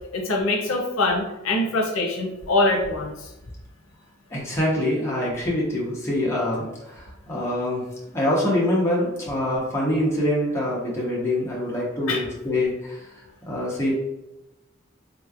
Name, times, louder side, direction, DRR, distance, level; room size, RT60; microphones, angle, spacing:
voice 1, 0.1-3.3 12.1-12.2, left 2 dB, 85° left, 1 dB, 0.6 m, -23 dB
voice 2, 4.3-7.8 8.1-13.0 13.4-13.9, left 1 dB, 15° left, -5 dB, 0.8 m, -25 dB
3.6 x 3.0 x 2.4 m, 0.98 s
head